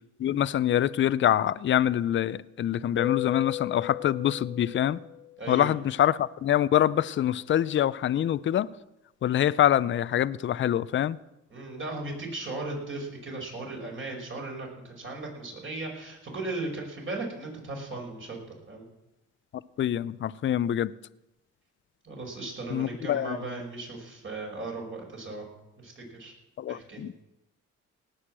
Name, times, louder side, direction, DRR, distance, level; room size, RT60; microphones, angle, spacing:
voice 1, 0.2-5.0 5.5-8.7 9.2-11.2 19.8-20.9 22.7-23.4 26.6-27.1, left 11 dB, 40° left, 0.5 m, -25 dB
Keyboard (musical), 3.0-5.5, left 17 dB, 85° left, 0.8 m, -35 dB
voice 2, 5.4-5.7 11.5-18.4 18.7-18.9 22.0-25.4 25.8-26.3 26.7-27.0, right 2 dB, 40° right, 5.3 m, -37 dB
18.0 x 6.5 x 7.5 m
cardioid pair, 90°, 30 cm